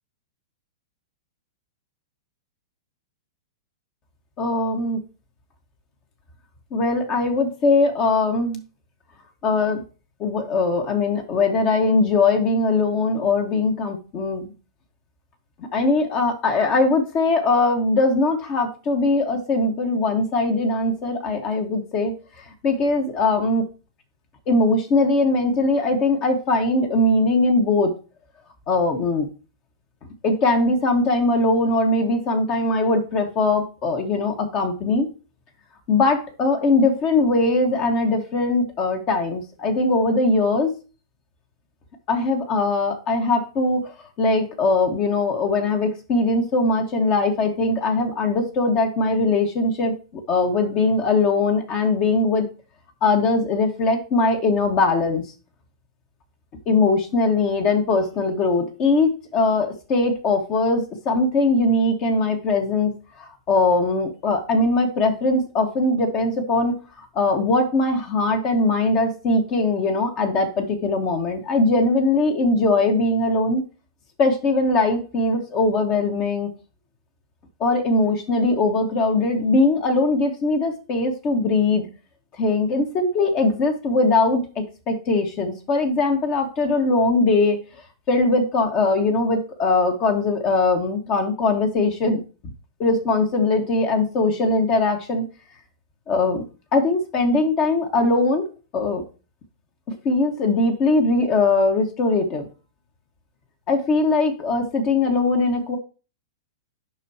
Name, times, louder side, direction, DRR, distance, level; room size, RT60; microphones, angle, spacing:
voice 1, 4.4-5.0 6.7-8.6 9.4-9.8 10.2-14.5 15.6-23.6 24.5-27.9 28.7-29.3 30.2-35.1 35.9-40.7 42.1-52.5 53.0-55.2 56.7-62.9 63.2-73.6 74.2-76.5 77.6-81.9 82.4-87.6 88.1-92.2 92.8-95.2 96.1-96.4 96.7-98.5 98.7-99.0 99.9-102.4 103.7-105.8, left 3 dB, 40° left, 4 dB, 1.6 m, -21 dB
8.8 x 5.6 x 2.9 m, 0.34 s
hypercardioid pair, 110°, 2 cm